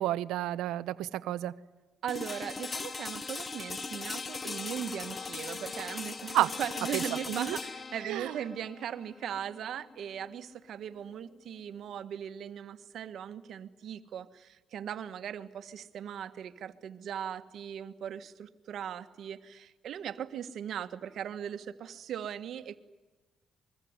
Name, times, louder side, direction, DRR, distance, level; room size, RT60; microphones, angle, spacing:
voice 1, 0.0-1.5 6.3-6.5 6.9-7.6 8.0-8.3, right 14 dB, 90° right, 15 dB, 0.8 m, -31 dB
voice 2, 2.0-22.8, right 9 dB, 70° right, 9 dB, 1.5 m, -39 dB
sound 1, 2.1-12.0, left 4 dB, 35° left, 0.8 m, -40 dB
25.0 x 22.5 x 9.7 m, 1.2 s
cardioid pair, 90°, 0 cm